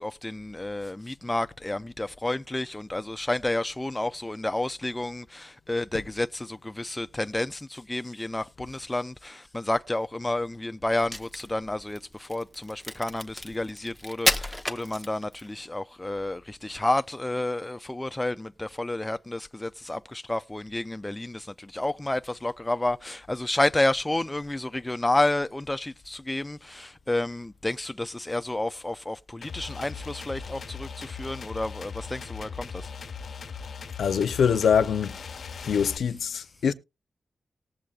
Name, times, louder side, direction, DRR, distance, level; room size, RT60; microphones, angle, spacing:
voice 1, 0.0-33.1, left 1 dB, 15° left, 0.5 m, -30 dB
Crack, 10.9-15.5, left 1 dB, 5° right, 1.0 m, -31 dB
sound 1, 29.4-36.0, left 5 dB, 65° left, 0.9 m, -39 dB
voice 2, 34.0-35.2 35.6-36.7, left 7 dB, 90° left, 0.6 m, -24 dB
19.0 x 7.5 x 2.4 m
cardioid pair, 80°, 0 cm